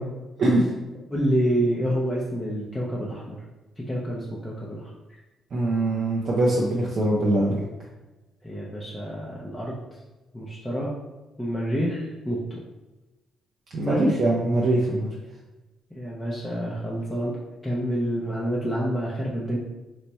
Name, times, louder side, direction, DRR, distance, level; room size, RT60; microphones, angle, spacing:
voice 1, 1.1-3.4 3.8-4.9 8.4-9.8 10.3-10.9 11.4-12.6 13.8-14.0 15.9-19.6, equal, 10° left, -6 dB, 0.6 m, -28 dB
voice 2, 5.5-7.6 13.7-15.1, right 1 dB, 55° right, -4 dB, 0.6 m, -22 dB
3.1 x 2.1 x 4.1 m, 1.1 s
cardioid pair, 90°, 0 cm